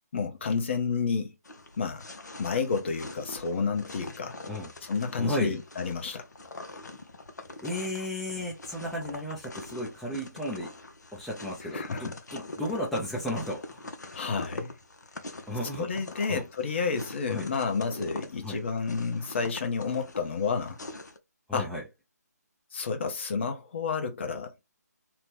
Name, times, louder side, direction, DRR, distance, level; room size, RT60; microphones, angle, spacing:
voice 1, 0.1-1.3 1.8-2.1 2.4-4.4 4.8-6.3 11.7-12.1 14.1-14.7 15.8-20.8 21.5-21.7 22.7-24.5, left 5 dB, 40° left, 0.7 m, -30 dB
sound 1, 1.4-21.2, left 2 dB, 75° left, 0.7 m, -44 dB
voice 2, 5.2-5.6 7.6-10.7 11.1-13.9 15.5-16.0 16.3-16.4 17.3-17.5 18.4-18.6 21.5-21.8, left 1 dB, ahead, 0.3 m, -34 dB
2.9 x 2.1 x 3.2 m
figure-of-eight pair, 150°, 9 cm